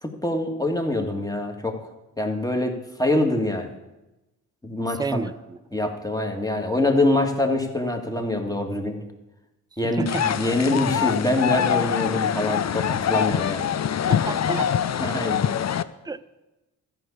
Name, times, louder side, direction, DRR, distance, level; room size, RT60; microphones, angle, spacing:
voice 1, 0.0-1.8 2.2-3.7 4.6-5.2 5.7-9.1 9.8-13.6 15.0-15.5, left 2 dB, 10° left, 3 dB, 2.0 m, -24 dB
voice 2, 5.0-5.6 9.8-10.3 14.1-14.7 16.0-16.2, right 3 dB, 10° right, 14 dB, 0.5 m, -29 dB
sound 1, 10.1-15.8, left 9 dB, 40° left, 0.6 m, -24 dB
13.0 x 5.6 x 8.5 m, 1.0 s
supercardioid pair, 55°, 42 cm